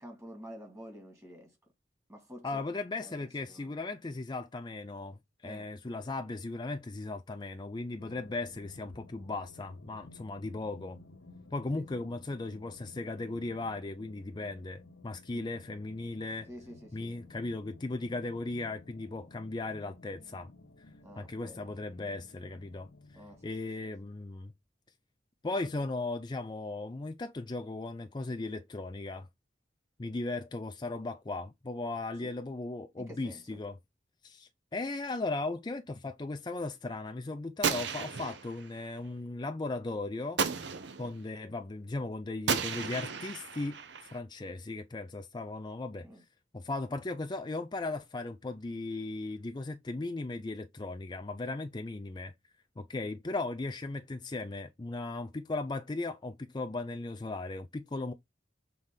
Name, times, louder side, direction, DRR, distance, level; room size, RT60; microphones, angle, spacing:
voice 1, 0.0-1.5 2.1-2.7 3.0-3.1 3.5-3.8 5.4-5.7 11.7-11.8 15.3-15.5 16.5-17.2 21.0-21.7 23.1-23.4 32.2-32.3 33.0-33.6 46.0-46.2, equal, 15° right, 2.2 m, -49 dB
voice 2, 2.4-11.0 11.5-16.5 16.9-20.5 21.2-24.5 25.4-29.3 30.0-33.8 34.2-40.4 41.0-43.8 44.1-46.3 46.5-52.3 52.8-58.1, left 2 dB, 25° left, 0.5 m, -37 dB
sound 1, 8.0-23.5, left 2 dB, 90° left, 0.9 m, -55 dB
Gunshot gunfire, 37.6-38.7 40.4-41.2 42.5-44.2, right 5 dB, 70° right, 0.8 m, -33 dB
7.1 x 3.8 x 3.8 m
head